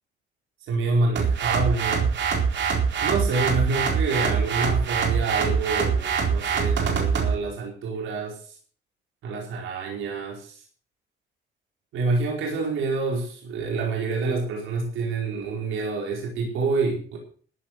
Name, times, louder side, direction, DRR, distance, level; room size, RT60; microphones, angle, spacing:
voice 1, 0.7-2.1 3.0-8.5 9.2-10.6 11.9-17.2, right 3 dB, 80° right, 0 dB, 4.6 m, -27 dB
sound 1, 1.2-7.4, right 6 dB, 65° right, 4.2 m, -24 dB
14.5 x 8.4 x 6.7 m, 0.44 s
cardioid pair, 90°, 20 cm